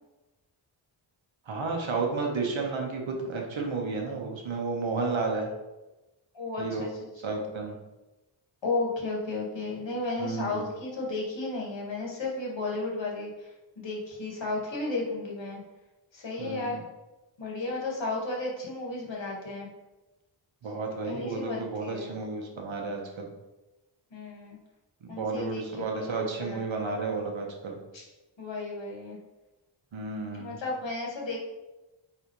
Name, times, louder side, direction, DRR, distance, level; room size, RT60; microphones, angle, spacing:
voice 1, 1.5-5.5 6.6-6.9 7.2-7.8 10.2-10.7 16.4-16.8 20.6-23.3 25.0-27.8 29.9-30.6, right 4 dB, 75° right, 1 dB, 1.4 m, -32 dB
voice 2, 6.3-7.4 8.6-15.6 16.1-16.8 17.4-19.7 21.0-22.1 24.1-24.6 25.1-25.6 25.9-27.0 27.9-28.0 28.4-29.2 30.4-31.4, left 2 dB, 65° left, -2 dB, 2.0 m, -34 dB
8.9 x 4.0 x 3.3 m, 1.0 s
wide cardioid pair, 100°, 47 cm